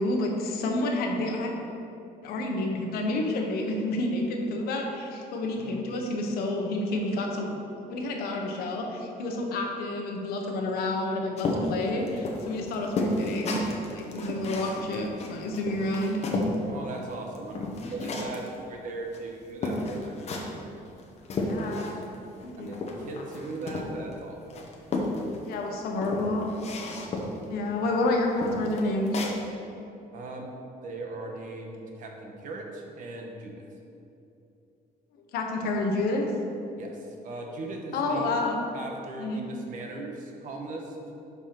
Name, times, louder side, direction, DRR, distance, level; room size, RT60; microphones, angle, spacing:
voice 1, 0.0-1.5 2.2-7.5 7.9-13.6 13.9-16.2 21.4-21.9 22.6-22.7 25.4-26.5 27.5-29.3 35.3-36.3 37.9-38.6 39.2-39.4, left 2 dB, 80° left, 1 dB, 1.0 m, -29 dB
sound 1, 11.4-16.6 17.0-18.5 19.1-19.2 19.6-20.6 21.0-22.2 22.4-24.1 24.5-25.5 26.0-27.4 27.9-28.0 28.4-29.4, left 2 dB, 45° left, 0.9 m, -32 dB
voice 2, 16.6-20.3 21.4-22.0 22.6-24.7 30.1-30.5 30.8-33.6 35.6-35.7 36.8-38.4 38.7-40.9, right 2 dB, 55° right, 1 dB, 1.1 m, -39 dB
5.5 x 4.7 x 5.7 m, 2.8 s
cardioid pair, 130°, 16 cm